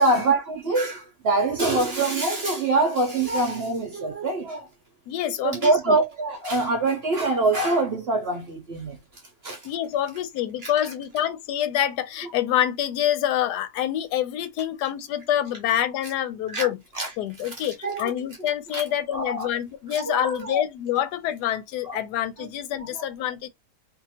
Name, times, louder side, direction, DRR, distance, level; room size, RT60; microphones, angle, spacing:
voice 1, 0.0-4.7 5.4-9.0 9.4-9.6 10.6-10.7 16.5-16.7 17.0-17.1 17.8-18.1 18.7-18.8 19.1-19.5 19.9-20.6 21.9-22.0 22.9-23.0, right 2 dB, 55° right, 0.7 m, -24 dB
voice 2, 5.1-6.0 9.6-16.8 17.2-23.5, left 11 dB, 85° left, 1.1 m, -26 dB
2.7 x 2.5 x 2.8 m
omnidirectional pair, 1.7 m